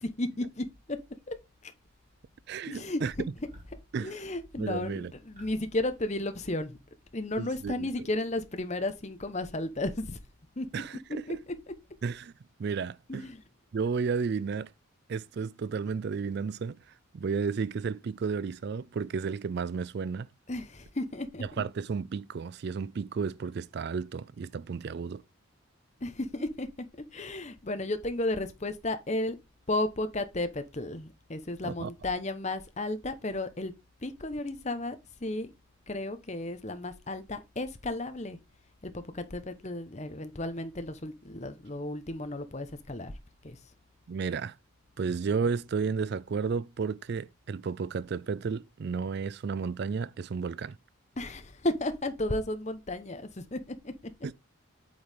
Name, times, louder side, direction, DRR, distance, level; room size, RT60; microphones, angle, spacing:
voice 1, 0.2-1.0 1.3-1.4 1.6-1.7 2.7-3.0 4.0-6.8 7.1-10.2 10.6-10.8 11.3-11.4 13.1-13.4 20.5-21.4 26.0-26.7 27.1-29.4 29.7-33.7 34.0-35.5 35.9-38.4 38.8-43.1 43.4-43.6 51.2-53.9, left 2 dB, 30° left, 1.0 m, -33 dB
sound 1, 0.7-1.4 1.7-2.4 2.7-3.0 3.3-6.8, equal, 35° right, 2.9 m, -56 dB
voice 2, 2.5-3.1 3.9-4.1 4.6-5.1 7.4-7.9 10.7-11.4 12.0-12.3 12.6-13.3 13.7-14.7 15.1-16.8 17.1-20.3 21.4-25.2 31.6-31.9 44.1-44.5 45.0-50.8 54.2-54.3, right 5 dB, 50° right, 0.3 m, -32 dB
8.5 x 4.7 x 3.6 m
head